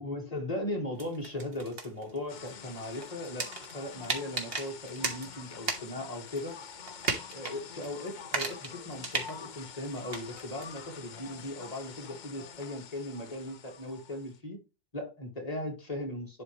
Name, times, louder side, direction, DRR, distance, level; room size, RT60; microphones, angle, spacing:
voice 1, 0.0-3.5 3.7-6.5 7.3-14.6 14.9-16.4, left 1 dB, 35° left, 2.3 m, -38 dB
sound 1, 1.0-6.0 6.3-7.6 7.8-10.6, right 3 dB, 70° right, 1.7 m, -37 dB
sound 2, 2.3-14.4, left 7 dB, 50° left, 0.7 m, -47 dB
11.0 x 4.7 x 3.2 m
omnidirectional pair, 1.1 m